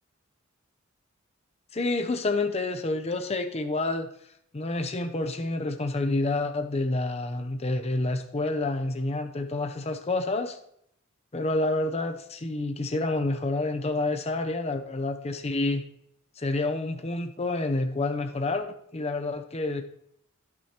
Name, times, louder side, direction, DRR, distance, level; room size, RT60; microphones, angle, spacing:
voice 1, 1.7-4.1 4.5-10.6 11.3-15.8 16.4-19.8, left 2 dB, 30° left, 7 dB, 0.6 m, -28 dB
17.5 x 6.3 x 2.9 m, 0.71 s
head